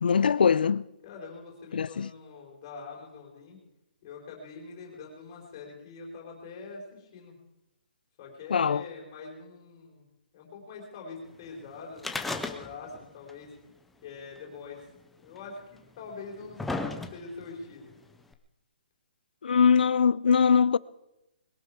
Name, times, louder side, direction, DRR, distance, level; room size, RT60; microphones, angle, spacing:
voice 1, 0.0-0.8 1.7-2.1 8.5-8.8 19.4-20.8, left 6 dB, 65° left, 0.5 m, -22 dB
voice 2, 1.0-3.6 4.0-7.4 8.2-10.0 10.3-13.5 14.0-14.9 15.2-16.7 17.1-17.9, left 4 dB, 25° left, 3.9 m, -44 dB
sound 1, 12.0-13.0 13.3-13.4 14.4-14.5 15.4-15.5 16.1-17.5 18.3-18.4, left 3 dB, ahead, 0.4 m, -34 dB
21.0 x 11.5 x 4.9 m
hypercardioid pair, 175°, 5 cm